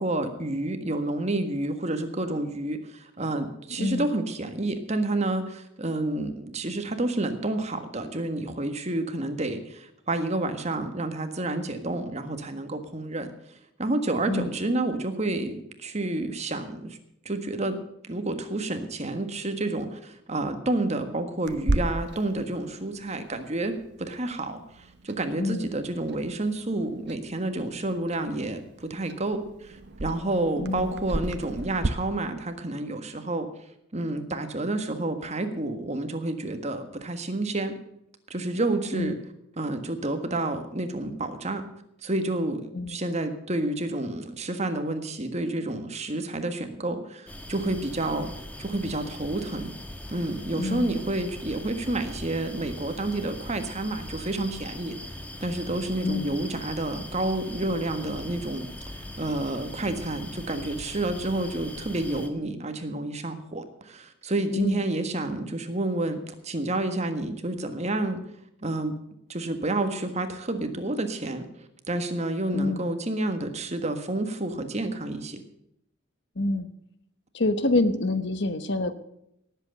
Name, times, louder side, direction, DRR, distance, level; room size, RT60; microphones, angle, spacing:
voice 1, 0.0-13.3 13.8-17.0 17.2-17.8 18.1-23.7 24.0-33.5 33.9-37.7 38.3-39.2 39.6-41.6 42.0-42.6 42.9-48.3 48.6-49.7 50.1-58.7 58.9-68.2 68.6-69.0 69.3-75.4, right 2 dB, 35° right, 8 dB, 1.6 m, -29 dB
Clock, 21.5-31.9, right 2 dB, 60° right, 0.9 m, -35 dB
voice 2, 25.4-25.7 30.6-30.9 38.9-39.1 42.7-43.0 50.5-51.0 56.0-56.4 64.5-64.8 72.5-72.9 76.4-76.7 77.3-79.0, left 2 dB, 60° left, 12 dB, 1.1 m, -27 dB
sound 1, 47.3-62.3, left 1 dB, 5° left, 1.4 m, -41 dB
18.5 x 8.1 x 6.6 m, 0.78 s
head